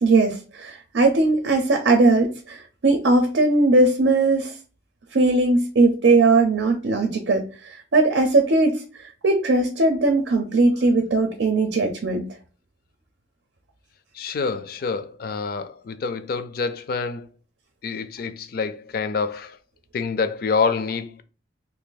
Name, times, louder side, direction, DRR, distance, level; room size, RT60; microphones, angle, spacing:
voice 1, 0.0-4.5 5.1-12.3, right 2 dB, 90° right, 0.6 m, -19 dB
voice 2, 14.1-17.3 17.8-19.6 19.9-21.2, left 5 dB, 55° left, 0.4 m, -27 dB
2.7 x 2.6 x 3.9 m
head